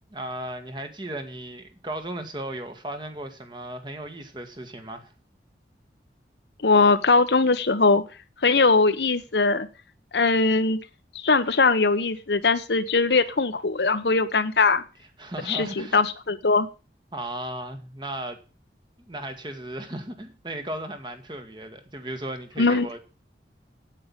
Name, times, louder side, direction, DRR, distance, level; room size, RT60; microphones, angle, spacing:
voice 1, 0.1-5.1 15.2-16.0 17.1-18.4 19.1-23.0, right 1 dB, 25° right, 6 dB, 1.7 m, -35 dB
voice 2, 6.6-8.0 8.4-9.7 10.1-10.8 11.2-14.8 15.5-16.7 22.6-23.0, left 3 dB, 75° left, 10 dB, 1.1 m, -21 dB
8.9 x 8.5 x 7.0 m, 0.34 s
head